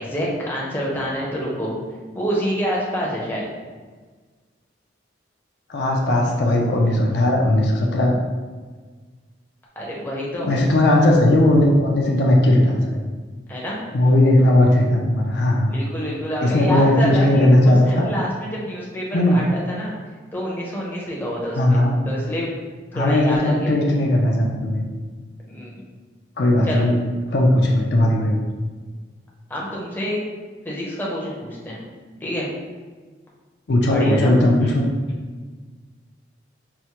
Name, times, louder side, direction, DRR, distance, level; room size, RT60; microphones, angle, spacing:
voice 1, 0.0-1.8 2.1-3.5 9.8-10.5 13.5-13.8 15.7-19.9 20.3-21.8 22.0-22.5 22.9-23.8 25.5-25.8 26.6-26.9 29.5-30.2 30.6-31.8 32.2-32.5 33.9-34.3 34.6-34.7, equal, 10° left, -5 dB, 0.6 m, -27 dB
voice 2, 5.7-8.1 10.4-13.1 13.9-15.7 16.4-18.1 19.1-19.5 21.6-22.0 22.9-24.8 26.4-27.0 27.3-28.4 33.7-34.9, left 1 dB, 60° left, -1 dB, 0.4 m, -17 dB
4.5 x 2.1 x 2.8 m, 1.4 s
head